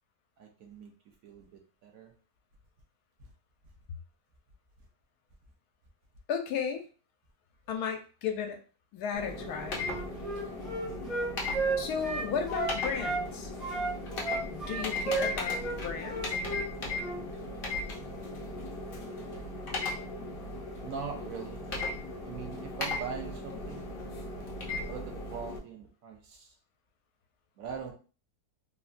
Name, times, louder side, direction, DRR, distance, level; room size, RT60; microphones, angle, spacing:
voice 1, 0.4-2.1 3.2-3.3 20.8-21.8 22.2-23.9 24.8-26.5 27.6-27.9, right 6 dB, 70° right, 3 dB, 0.9 m, -42 dB
voice 2, 6.3-6.8 7.7-8.6 8.9-9.9 11.8-13.5 14.5-16.2, left 7 dB, 80° left, 5 dB, 1.1 m, -34 dB
sound 1, 9.1-25.6, left 2 dB, 55° left, 0.6 m, -37 dB
Wind instrument woodwind instrument, 9.8-13.2 13.6-16.7 17.0-17.2, right 3 dB, ahead, 0.5 m, -33 dB
3.2 x 2.1 x 2.4 m, 0.35 s
omnidirectional pair, 1.7 m